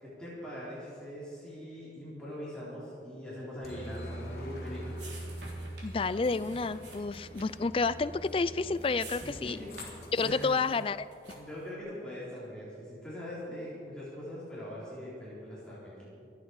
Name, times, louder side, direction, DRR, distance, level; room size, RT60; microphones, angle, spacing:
voice 1, 0.0-5.0 9.2-9.7 10.2-10.5 11.3-16.0, equal, 5° left, -9 dB, 4.0 m, -42 dB
Aircraft, 3.6-10.5, equal, 60° left, 2.6 m, -44 dB
sound 1, 4.2-11.7, right 2 dB, 75° right, 3.4 m, -51 dB
voice 2, 5.8-9.6 10.1-11.1, left 4 dB, 30° left, 15 dB, 0.3 m, -30 dB
25.5 x 8.9 x 4.8 m, 2.6 s
head